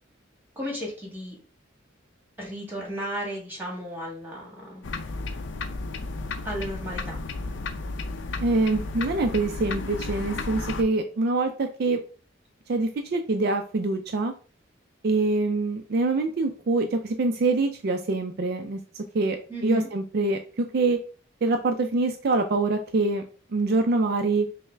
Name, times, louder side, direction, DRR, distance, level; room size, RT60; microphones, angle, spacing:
voice 1, 0.5-1.3 2.4-4.8 6.4-7.2 19.5-19.9, equal, 10° right, -2 dB, 1.6 m, -34 dB
sound 1, 4.8-10.8, left 3 dB, 65° left, 0.5 m, -33 dB
voice 2, 8.4-12.0 12.7-14.3 15.0-19.4 19.6-21.0 21.4-23.3 23.5-24.5, right 3 dB, 55° right, 5 dB, 0.4 m, -25 dB
5.5 x 2.1 x 3.3 m, 0.38 s
head